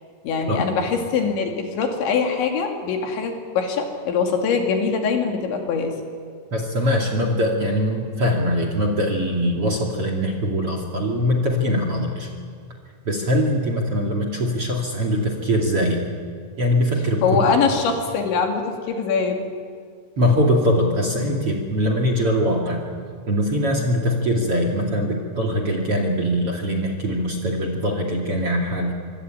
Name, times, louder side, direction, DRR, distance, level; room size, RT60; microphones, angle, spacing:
voice 1, 0.2-6.0 17.2-19.4, left 5 dB, 75° left, 3 dB, 4.7 m, -23 dB
voice 2, 6.5-12.3 13.1-16.0 16.6-17.6 20.2-22.8 23.3-28.9, equal, 40° right, 3 dB, 2.6 m, -22 dB
25.0 x 23.0 x 8.9 m, 2.2 s
omnidirectional pair, 5.4 m